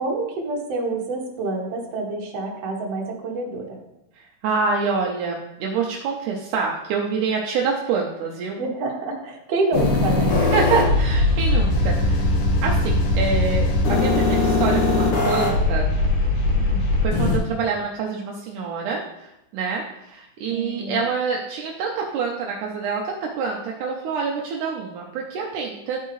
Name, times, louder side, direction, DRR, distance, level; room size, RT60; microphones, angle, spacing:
voice 1, 0.0-3.8 8.6-10.4 16.6-16.9 20.5-21.1, right 2 dB, 55° right, -2 dB, 2.2 m, -27 dB
voice 2, 4.1-8.6 10.5-12.3 12.6-15.9 17.0-26.0, right 5 dB, 75° right, -1 dB, 2.1 m, -26 dB
sound 1, 9.7-17.4, left 2 dB, 60° left, 1.6 m, -20 dB
12.0 x 4.6 x 3.1 m, 0.87 s
omnidirectional pair, 3.7 m